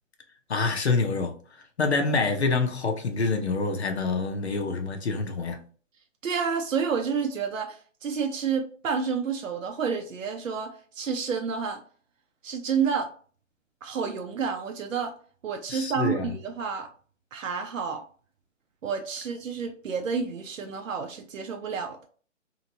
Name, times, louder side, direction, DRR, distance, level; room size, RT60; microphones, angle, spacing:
voice 1, 0.5-1.3 1.8-5.6 15.7-16.3, left 4 dB, 55° left, 0.6 m, -26 dB
voice 2, 6.2-11.8 12.4-13.1 13.8-15.1 15.4-16.9 17.3-18.0 18.8-22.0, right 6 dB, 85° right, 0.6 m, -29 dB
2.8 x 2.6 x 2.7 m
hypercardioid pair, 175°, 38 cm